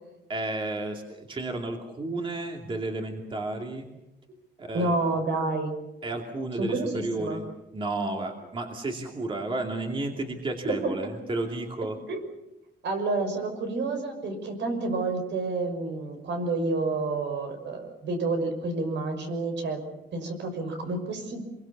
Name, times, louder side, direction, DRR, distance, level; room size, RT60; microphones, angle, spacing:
voice 1, 0.3-3.9 4.6-5.0 6.0-12.0, right 2 dB, 25° right, 2 dB, 2.6 m, -32 dB
voice 2, 4.7-5.7 6.6-7.4 10.6-10.9 12.1-12.2 12.8-19.8 20.1-21.4, right 3 dB, 70° right, 6 dB, 6.1 m, -29 dB
27.0 x 23.0 x 7.2 m, 0.93 s
wide cardioid pair, 170°, 19 cm